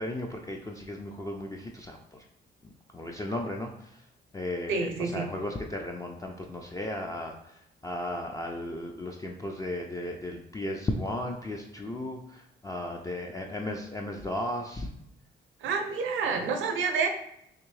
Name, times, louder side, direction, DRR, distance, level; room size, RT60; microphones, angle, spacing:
voice 1, 0.0-2.2 2.9-4.0 4.3-14.9, left 1 dB, 15° left, 1 dB, 0.3 m, -35 dB
voice 2, 4.7-5.3 15.6-17.1, right 5 dB, 75° right, 5 dB, 0.6 m, -28 dB
3.5 x 2.6 x 3.1 m, 0.75 s
cardioid pair, 90°, 20 cm